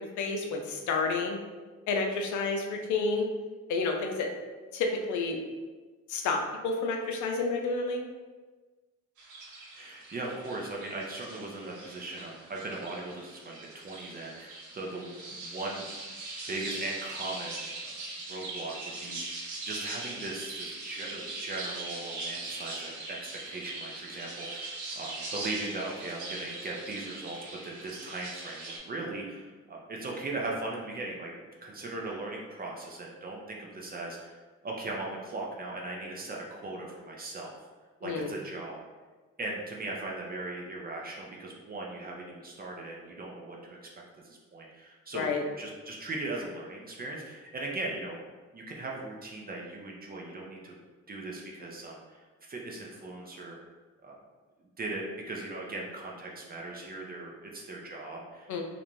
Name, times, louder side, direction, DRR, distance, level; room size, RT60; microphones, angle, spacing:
voice 1, 0.2-1.4 1.9-3.3 3.7-4.3 4.7-5.4 6.1-8.0 38.0-38.3 45.1-45.4 58.5-58.6, left 4 dB, 75° left, 3 dB, 0.5 m, -30 dB
sound 1, 9.2-28.8, right 2 dB, 75° right, 0.8 m, -41 dB
voice 2, 9.7-15.9 16.5-18.0 18.3-23.2 23.5-27.4 27.6-34.4 34.6-37.5 38.0-38.8 39.4-43.8 44.2-48.2 48.5-50.7 51.1-53.6 54.0-54.1 54.8-58.6, right 2 dB, 30° right, -2 dB, 0.5 m, -39 dB
2.5 x 2.0 x 3.0 m, 1.3 s
cardioid pair, 90°, 30 cm